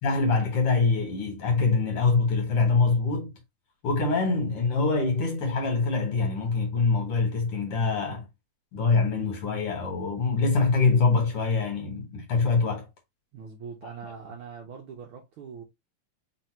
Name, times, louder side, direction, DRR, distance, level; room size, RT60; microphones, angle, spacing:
voice 1, 0.0-3.3 3.8-8.3 8.7-12.9, left 4 dB, 55° left, 2.0 m, -24 dB
voice 2, 13.3-15.6, right 6 dB, 65° right, 1.4 m, -42 dB
4.4 x 2.7 x 4.4 m
omnidirectional pair, 3.3 m